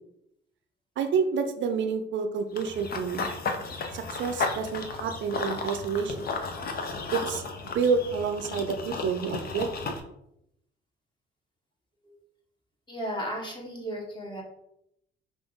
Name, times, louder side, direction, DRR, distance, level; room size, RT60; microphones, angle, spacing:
voice 1, 1.0-3.3 3.9-6.3 7.1-10.0, right 5 dB, 70° right, 7 dB, 0.6 m, -29 dB
Run / Bird vocalization bird call bird song, 2.6-10.0, left 4 dB, 50° left, 0.7 m, -34 dB
voice 2, 12.9-14.4, equal, 25° left, -1 dB, 1.2 m, -34 dB
5.4 x 2.5 x 3.6 m, 0.78 s
cardioid pair, 90°, 20 cm